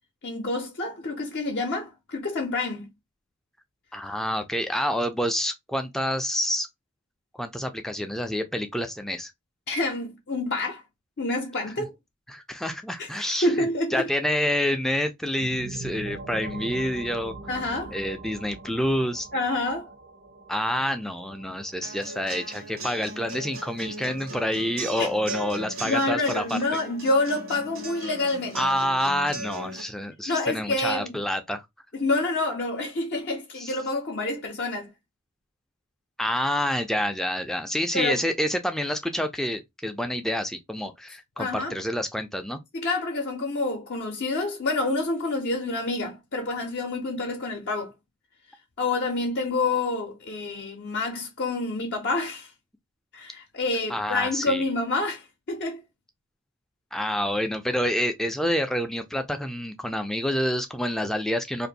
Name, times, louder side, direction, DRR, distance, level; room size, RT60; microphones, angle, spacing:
voice 1, 0.2-2.9 9.7-10.8 11.2-11.9 13.0-14.1 17.5-17.9 19.3-19.9 25.0-25.1 25.8-28.6 30.3-31.2 31.9-34.9 37.9-38.2 41.4-41.7 42.7-47.9 48.8-52.5 53.1-55.8, left 2 dB, 55° left, 0.6 m, -28 dB
voice 2, 3.9-6.7 7.3-9.3 12.3-17.4 17.9-19.3 20.5-26.6 28.5-31.7 33.6-33.7 36.2-42.6 53.9-54.6 56.9-61.7, equal, ahead, 0.4 m, -28 dB
sound 1, 15.4-25.0, right 3 dB, 50° right, 0.6 m, -42 dB
sound 2, 21.8-29.8, right 2 dB, 85° right, 1.1 m, -38 dB
2.6 x 2.5 x 3.9 m
head